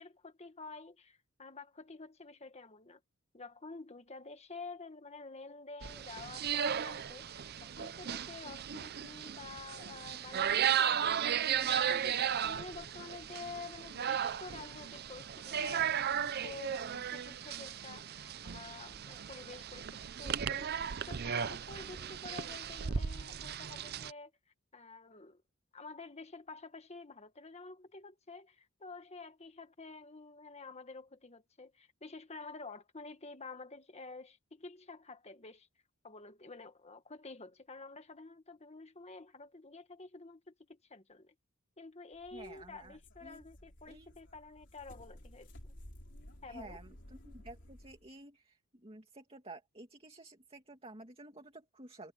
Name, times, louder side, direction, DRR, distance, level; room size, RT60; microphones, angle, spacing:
voice 1, 0.0-3.0 3.3-11.5 11.9-20.7 21.1-24.3 24.7-25.4 25.7-35.7 36.0-41.3 41.8-45.7 46.4-46.8, left 3 dB, 30° left, 1.5 m, -50 dB
sound 1, 5.8-24.1, right 8 dB, 50° right, 0.5 m, -35 dB
sound 2, 42.1-48.1, equal, 55° left, 4.0 m, -55 dB
voice 2, 42.3-43.4 43.9-44.1 46.5-46.9 47.2-52.1, right 2 dB, 25° right, 2.5 m, -52 dB
head